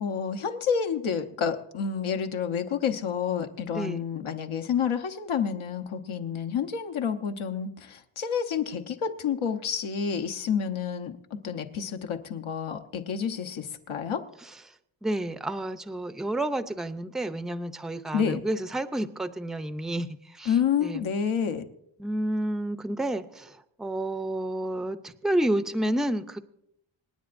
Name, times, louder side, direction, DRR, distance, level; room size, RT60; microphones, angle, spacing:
voice 1, 0.0-11.2 11.4-14.2 18.1-18.4 20.4-21.6, left 7 dB, 75° left, 6 dB, 1.1 m, -29 dB
voice 2, 3.7-4.0 15.0-20.1 20.4-20.5 20.8-21.1 22.0-23.5 23.8-26.4, right 1 dB, ahead, 11 dB, 0.5 m, -30 dB
27.0 x 9.7 x 2.6 m, 0.75 s
wide cardioid pair, 115°, 49 cm